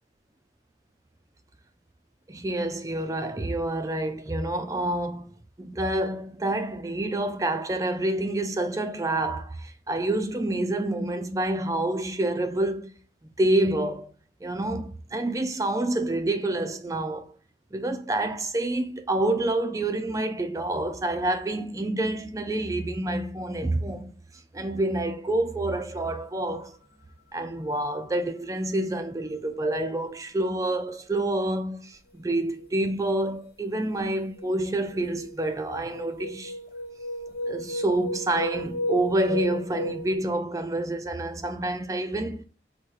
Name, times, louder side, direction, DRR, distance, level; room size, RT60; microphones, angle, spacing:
voice 1, 2.3-5.3 5.6-12.9 13.4-14.1 14.4-17.3 17.7-24.1 24.5-26.8 27.3-36.6 37.5-42.4, right 1 dB, 20° right, 0.3 m, -28 dB
sound 1, 33.1-33.4 33.9-40.2, equal, 65° left, 1.2 m, -34 dB
4.5 x 2.1 x 4.6 m
head